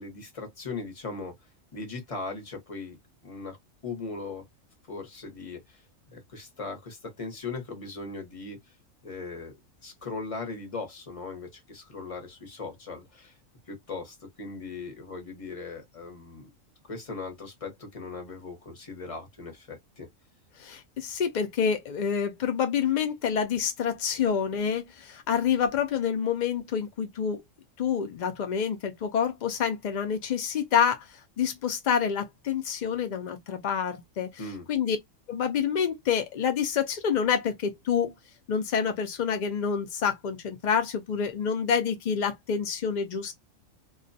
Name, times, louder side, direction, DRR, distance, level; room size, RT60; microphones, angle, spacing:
voice 1, 0.0-3.0 3.2-3.6 3.8-4.4 4.9-5.8 6.1-8.6 9.0-9.6 9.8-13.4 13.7-16.5 16.9-20.1 34.4-34.7, left 3 dB, 30° left, 0.8 m, -39 dB
voice 2, 20.6-27.4 27.8-34.3 34.7-35.0 35.3-38.1 38.5-43.3, left 7 dB, 90° left, 0.4 m, -27 dB
2.3 x 2.1 x 2.5 m
omnidirectional pair, 1.4 m